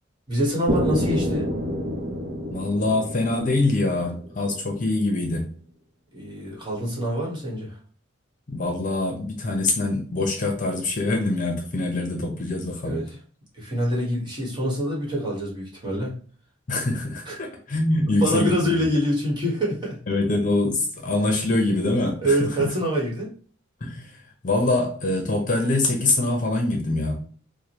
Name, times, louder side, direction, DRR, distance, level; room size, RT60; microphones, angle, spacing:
voice 1, 0.3-1.5 6.1-7.8 12.8-13.2 13.5-16.2 17.2-17.4 18.2-20.0 22.2-23.3, equal, 25° right, -4 dB, 1.4 m, -25 dB
sound 1, 0.7-4.6, equal, 70° right, 0.8 m, -28 dB
voice 2, 2.5-5.5 8.5-13.0 16.7-18.7 20.1-22.7 23.8-24.1 24.4-27.2, left 2 dB, 40° left, 3 dB, 0.7 m, -24 dB
4.8 x 2.2 x 3.0 m, 0.44 s
head